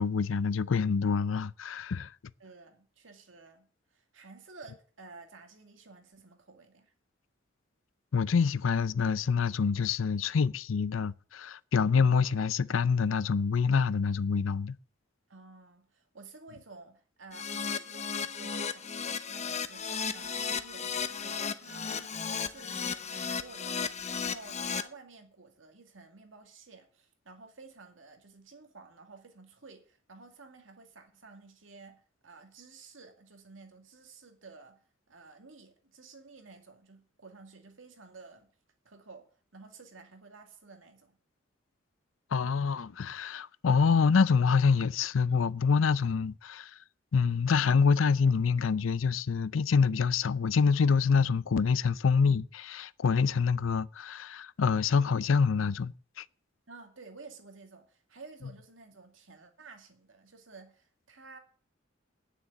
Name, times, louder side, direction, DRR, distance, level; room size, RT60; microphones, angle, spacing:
voice 1, 0.0-2.1 8.1-14.8 42.3-46.7 47.1-56.2, left 5 dB, 90° left, 0.5 m, -26 dB
voice 2, 2.4-6.9 15.3-23.8 24.1-38.5 38.8-41.2 56.7-61.4, right 4 dB, 80° right, 2.2 m, -52 dB
Keyboard (musical), 17.3-24.8, left 6 dB, 35° left, 0.8 m, -35 dB
9.7 x 6.9 x 8.9 m
head